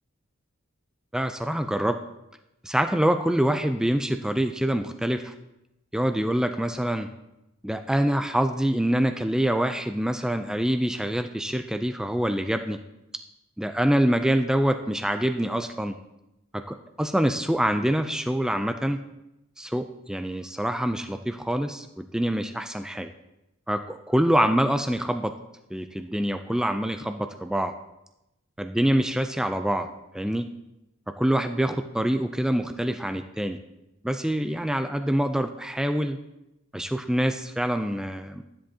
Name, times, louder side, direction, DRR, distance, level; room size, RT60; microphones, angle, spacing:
voice 1, 1.1-2.0 2.6-5.3 5.9-7.1 7.6-12.8 13.6-15.9 16.5-19.0 19.6-23.1 23.7-25.3 25.7-27.7 28.6-29.9 30.1-30.4 31.2-33.6 34.0-36.2 36.7-38.4, right 1 dB, 5° right, 7 dB, 0.3 m, -25 dB
12.5 x 10.0 x 2.8 m, 0.90 s
head